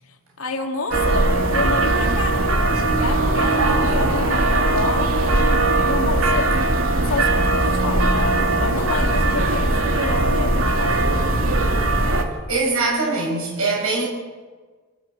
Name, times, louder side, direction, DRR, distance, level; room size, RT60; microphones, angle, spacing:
voice 1, 0.4-5.4 5.8-6.5 7.0-11.6, left 3 dB, 80° left, 3 dB, 2.6 m, -29 dB
sound 1, 0.9-12.2, right 2 dB, 70° right, 2.6 m, -19 dB
voice 2, 12.5-14.0, right 3 dB, 90° right, -2 dB, 6.5 m, -22 dB
27.5 x 15.0 x 8.2 m, 1.4 s
head